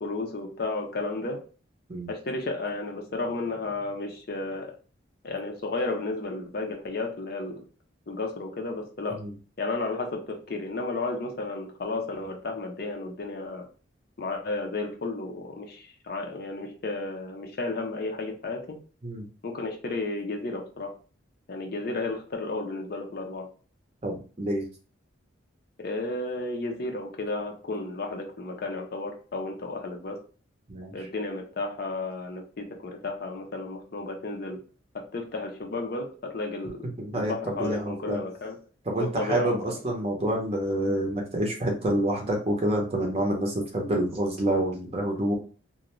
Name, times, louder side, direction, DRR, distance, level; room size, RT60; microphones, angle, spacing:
voice 1, 0.0-1.4 2.1-4.7 5.2-7.6 8.1-9.2 9.6-13.7 14.2-18.8 19.4-20.9 21.5-23.5 25.8-30.2 30.9-34.6 34.9-36.8 37.1-38.6 39.0-39.6, left 2 dB, 50° left, 2 dB, 0.5 m, -33 dB
voice 2, 24.0-24.6 30.7-30.9 37.0-38.2 38.9-45.3, right 1 dB, 30° right, 0 dB, 0.6 m, -27 dB
2.4 x 2.1 x 2.9 m, 0.37 s
head